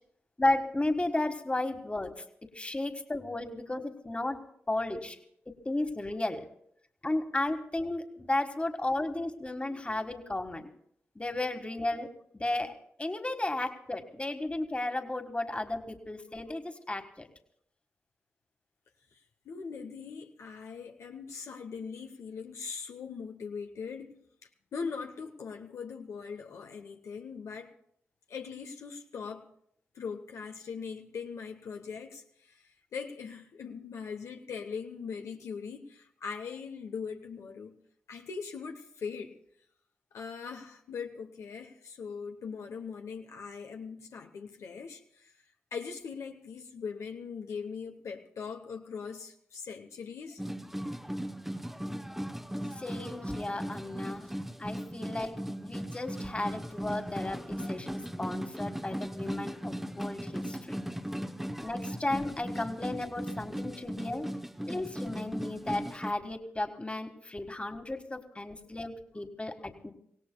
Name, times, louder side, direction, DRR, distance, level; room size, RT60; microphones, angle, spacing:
voice 1, 0.4-4.4 4.7-5.2 5.6-6.4 7.0-10.7 11.1-12.1 12.3-12.7 13.0-17.3 52.8-54.3 54.6-55.3 55.6-60.8 61.6-64.3 64.7-69.9, left 2 dB, 25° left, 6 dB, 1.7 m, -34 dB
voice 2, 19.4-24.2 24.7-27.7 28.3-29.4 29.9-32.6 32.9-37.8 38.1-39.4 40.1-45.3 45.7-50.4, left 5 dB, 80° left, 4 dB, 0.9 m, -40 dB
sound 1, 50.4-66.1, equal, 5° right, 0.8 m, -37 dB
24.5 x 17.0 x 2.3 m, 0.69 s
cardioid pair, 45°, 5 cm